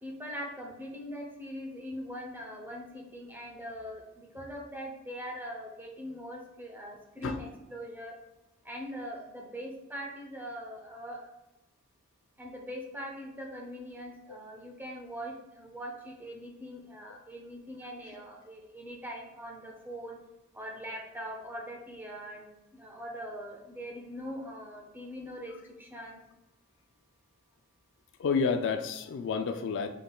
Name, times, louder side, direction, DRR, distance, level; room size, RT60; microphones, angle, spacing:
voice 1, 0.0-8.2 8.6-11.3 12.4-20.2 20.5-26.2, equal, 10° right, 0 dB, 0.7 m, -42 dB
voice 2, 28.2-29.9, left 5 dB, 60° left, 8 dB, 0.3 m, -29 dB
5.4 x 3.7 x 2.3 m, 0.97 s
head